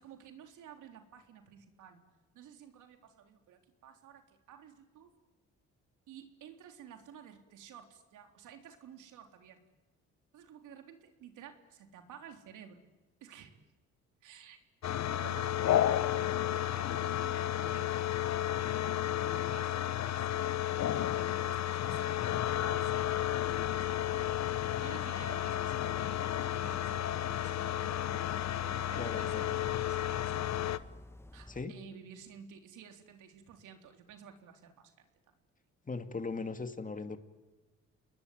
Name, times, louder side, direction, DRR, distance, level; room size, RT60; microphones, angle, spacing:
voice 1, 0.0-2.0 2.3-5.1 6.1-9.6 10.3-12.8 13.2-13.5 14.2-19.8 20.0-20.6 21.0-23.0 23.6-24.1 24.8-28.0 28.6-30.4 31.3-35.3, right 8 dB, 85° right, 5 dB, 3.6 m, -53 dB
sound 1, 14.8-30.8, left 12 dB, 65° left, 1.1 m, -32 dB
sound 2, 22.4-31.6, left 1 dB, 10° left, 1.4 m, -53 dB
voice 2, 29.0-29.5 31.5-31.7 35.9-37.2, left 4 dB, 25° left, 8 dB, 2.4 m, -39 dB
29.5 x 21.0 x 9.4 m, 1.2 s
cardioid pair, 90°, 30 cm